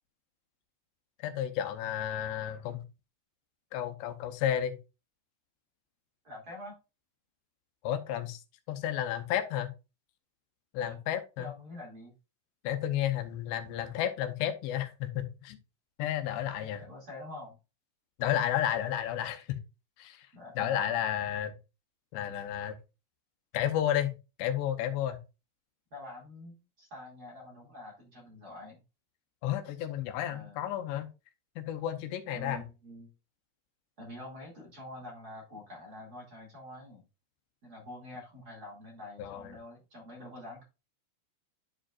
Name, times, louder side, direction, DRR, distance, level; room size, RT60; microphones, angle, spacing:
voice 1, 1.2-2.8 3.7-4.8 7.8-8.4 8.7-9.7 10.7-11.5 12.6-15.6 16.0-16.8 18.2-19.6 20.0-20.3 20.6-21.5 22.1-22.8 23.5-25.2 29.4-31.1 31.6-32.6 39.2-39.6, left 11 dB, 85° left, 7 dB, 2.9 m, -32 dB
voice 2, 6.2-6.8 10.8-11.0 11.4-12.1 16.5-17.6 20.3-20.9 25.9-28.8 30.3-30.6 32.3-33.1 34.0-37.0 37.6-40.6, left 1 dB, 30° right, -2 dB, 1.9 m, -46 dB
11.0 x 5.0 x 2.4 m, 0.28 s
omnidirectional pair, 5.1 m